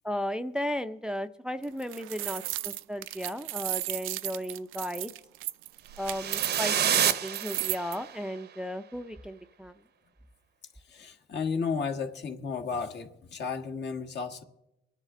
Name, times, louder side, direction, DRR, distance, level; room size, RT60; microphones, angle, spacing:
voice 1, 0.0-5.1 6.0-9.8, equal, 5° right, 10 dB, 0.4 m, -35 dB
sound 1, 1.6-8.0, right 16 dB, 90° right, 0.4 m, -35 dB
sound 2, 6.0-8.2, right 9 dB, 55° right, 0.7 m, -28 dB
voice 2, 10.9-14.4, left 5 dB, 60° left, 5 dB, 1.5 m, -33 dB
24.5 x 9.9 x 3.7 m, 0.89 s
cardioid pair, 90°, 20 cm